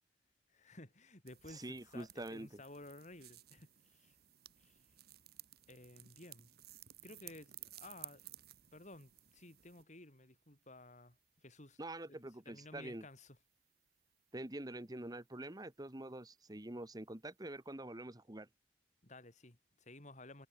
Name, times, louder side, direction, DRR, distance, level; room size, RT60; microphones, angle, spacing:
voice 1, 0.5-4.2 4.6-4.8 5.7-6.5 7.0-8.2 8.7-11.8 12.1-13.4 19.0-20.5, left 2 dB, 40° left, 5.0 m, -55 dB
sound 1, 1.3-9.8, right 14 dB, 60° right, 1.8 m, -57 dB
voice 2, 1.5-2.5 11.8-13.0 14.3-18.5, right 1 dB, 20° right, 1.4 m, -46 dB
head